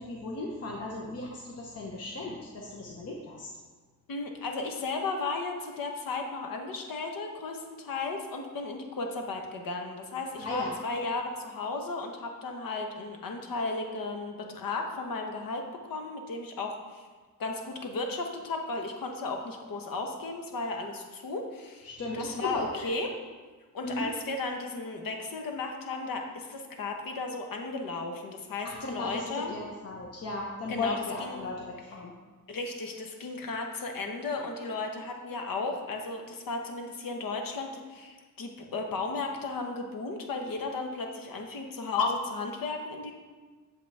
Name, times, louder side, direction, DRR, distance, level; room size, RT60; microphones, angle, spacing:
voice 1, 0.0-3.5 10.4-10.7 21.8-22.9 23.8-24.1 28.6-32.1, left 2 dB, 45° left, -2 dB, 0.9 m, -36 dB
voice 2, 4.1-17.1 17.4-23.1 23.7-29.5 30.7-31.4 32.5-43.1, left 3 dB, 75° left, 3 dB, 1.1 m, -34 dB
7.9 x 7.2 x 3.4 m, 1.4 s
wide cardioid pair, 150°, 34 cm